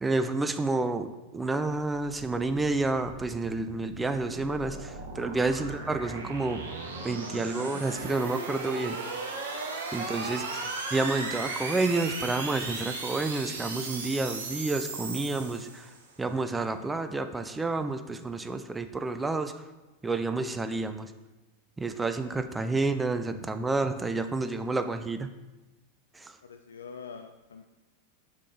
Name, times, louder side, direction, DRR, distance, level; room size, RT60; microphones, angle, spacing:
voice 1, 0.0-6.7 7.0-9.0 9.9-15.9 16.2-19.6 20.0-21.1 21.8-25.3 26.1-26.4, right 3 dB, 10° right, 9 dB, 0.4 m, -30 dB
sound 1, 2.4-16.1, right 3 dB, 60° right, 1.0 m, -37 dB
voice 2, 26.4-27.6, left 6 dB, 70° left, 7 dB, 0.3 m, -45 dB
6.3 x 5.8 x 3.8 m, 1.1 s
figure-of-eight pair, 90°, 0 cm